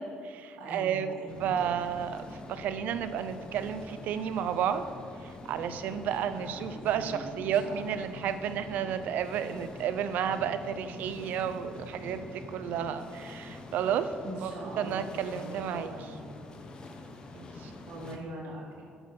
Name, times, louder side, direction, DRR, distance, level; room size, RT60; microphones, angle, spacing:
voice 1, 0.0-1.1 1.4-2.2 2.5-4.9 5.2-14.1 14.4-14.5 14.8-15.9 17.3-17.7, right 8 dB, 65° right, 11 dB, 0.6 m, -32 dB
voice 2, 0.6-2.1 6.3-7.9 14.2-16.5 17.9-18.9, right 1 dB, 85° right, -3 dB, 2.8 m, -43 dB
sound 1, 1.3-18.2, left 2 dB, 30° left, 0.9 m, -45 dB
9.8 x 6.8 x 6.7 m, 2.4 s
cardioid pair, 170°, 3 cm